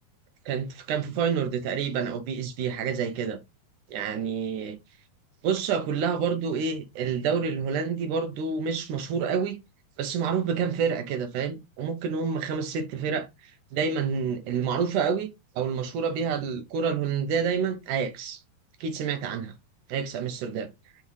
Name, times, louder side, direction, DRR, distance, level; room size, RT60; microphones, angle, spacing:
voice 1, 0.5-3.4 3.9-4.8 5.4-9.6 10.0-15.3 15.6-18.4 18.8-19.5 19.9-20.7, right 6 dB, 70° right, 2.0 m, -28 dB
6.7 x 5.6 x 3.1 m
omnidirectional pair, 4.4 m